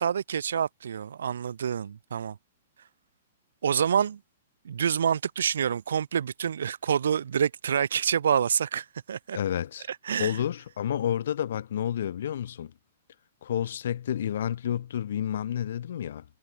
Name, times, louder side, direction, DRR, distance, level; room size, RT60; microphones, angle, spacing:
voice 1, 0.0-2.4 3.6-4.2 4.6-9.4 10.0-10.3, right 8 dB, 85° right, 1.5 m, -27 dB
voice 2, 9.3-9.9 10.2-12.7 13.4-16.2, left 10 dB, 60° left, 1.1 m, -30 dB
hypercardioid pair, 170°, 0 cm